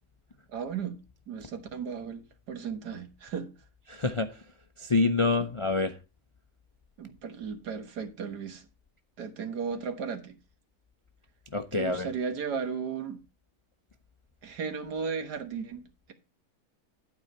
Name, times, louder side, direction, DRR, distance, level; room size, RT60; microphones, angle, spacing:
voice 1, 0.5-1.0 1.3-3.5 7.0-8.7 9.2-10.4 11.7-13.2 14.4-16.1, right 6 dB, 80° right, 1.9 m, -35 dB
voice 2, 3.9-4.3 4.8-5.9 11.5-12.1, left 3 dB, 45° left, 0.3 m, -26 dB
12.0 x 4.8 x 5.4 m
omnidirectional pair, 1.7 m